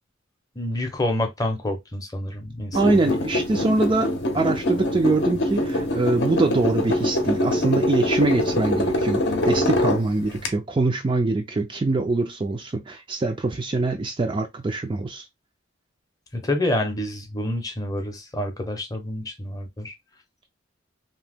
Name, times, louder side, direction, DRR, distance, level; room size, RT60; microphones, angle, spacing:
voice 1, 0.5-3.1 16.3-19.9, left 1 dB, 20° left, 0.6 m, -28 dB
sound 1, 2.7-10.5, left 1 dB, 55° left, 0.7 m, -24 dB
voice 2, 2.7-4.1 4.3-15.3, right 2 dB, 25° right, 0.3 m, -23 dB
2.8 x 2.1 x 3.4 m
head